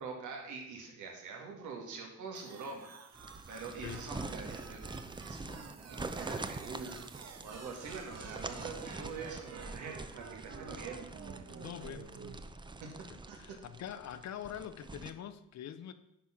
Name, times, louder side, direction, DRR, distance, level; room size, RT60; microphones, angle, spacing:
voice 1, 0.0-2.9 3.5-7.0 7.4-11.0 13.3-13.4, right 4 dB, 80° right, 2.1 m, -44 dB
sound 1, 2.3-12.4, right 6 dB, 60° right, 1.1 m, -51 dB
sound 2, 3.1-15.1, right 3 dB, 15° right, 0.6 m, -45 dB
voice 2, 11.5-12.1 13.1-15.9, left 10 dB, 65° left, 0.7 m, -44 dB
9.8 x 4.7 x 5.8 m
cardioid pair, 90°, 30 cm